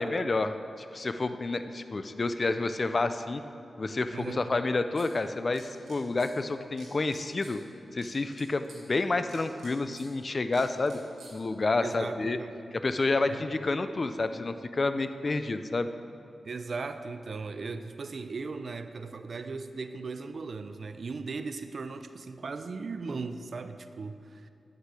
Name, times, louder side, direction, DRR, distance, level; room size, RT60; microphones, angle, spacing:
voice 1, 0.0-3.4 3.8-7.6 7.9-11.0 11.3-12.4 12.7-15.9, left 3 dB, 45° left, 10 dB, 0.5 m, -29 dB
voice 2, 4.1-4.4 11.8-12.5 13.3-13.4 16.4-24.5, right 4 dB, 60° right, 10 dB, 0.5 m, -38 dB
sound 1, 4.9-5.1 5.5-6.3 6.8-7.5 8.0-8.8 9.3-10.1 10.5-11.3, right 3 dB, 90° right, 2.0 m, -51 dB
9.5 x 6.6 x 4.8 m, 2.5 s
cardioid pair, 60°, 0 cm